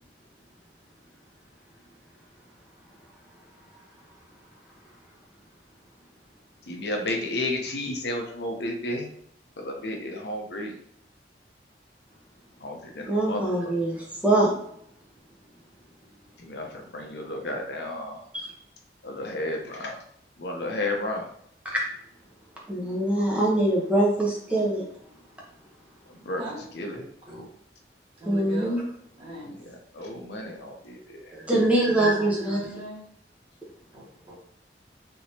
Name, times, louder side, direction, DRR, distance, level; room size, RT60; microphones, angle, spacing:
voice 1, 6.7-9.1 9.6-10.8 12.6-13.8 16.4-18.2 19.0-20.0 20.4-21.3 26.1-26.4 26.7-27.0 29.4-31.4, left 1 dB, 70° left, 2 dB, 0.6 m, -32 dB
voice 2, 13.0-14.5 18.3-18.5 21.6-21.9 22.7-24.8 28.3-28.8 31.3-32.6, right 1 dB, 10° right, -4 dB, 0.9 m, -23 dB
voice 3, 26.9-27.5 28.2-28.8 29.2-29.5 31.5-33.0 33.9-34.4, right 1 dB, 30° right, -7 dB, 1.5 m, -39 dB
3.5 x 2.9 x 2.7 m, 0.68 s
head